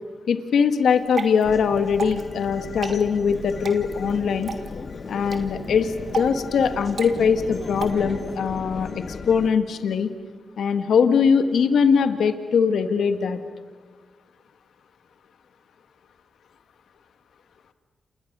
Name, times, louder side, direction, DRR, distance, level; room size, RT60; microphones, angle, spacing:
voice 1, 0.3-4.5 5.1-10.1 10.6-13.4, left 6 dB, 80° left, 8 dB, 1.6 m, -21 dB
Water / Drip, 0.8-7.8, right 5 dB, 60° right, 2.9 m, -36 dB
sound 1, 1.4-9.5, left 4 dB, 55° left, 1.6 m, -36 dB
29.5 x 28.5 x 6.7 m, 1.4 s
supercardioid pair, 45°, 0 cm